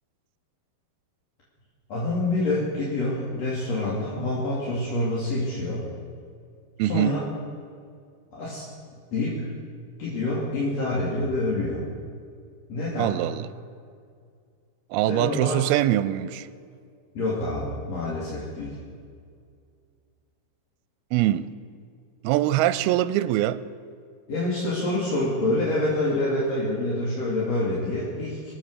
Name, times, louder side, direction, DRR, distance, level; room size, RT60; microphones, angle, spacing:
voice 1, 1.9-5.8 6.8-7.2 8.3-8.7 9.1-9.5 10.0-11.8 12.7-13.2 15.1-15.6 17.2-18.8 24.3-28.5, left 2 dB, 45° left, -7 dB, 3.5 m, -27 dB
voice 2, 6.8-7.1 13.0-13.5 14.9-16.5 21.1-21.5 22.2-23.6, right 14 dB, 85° right, 16 dB, 2.5 m, -23 dB
25.5 x 8.6 x 6.6 m, 2.2 s
omnidirectional pair, 4.4 m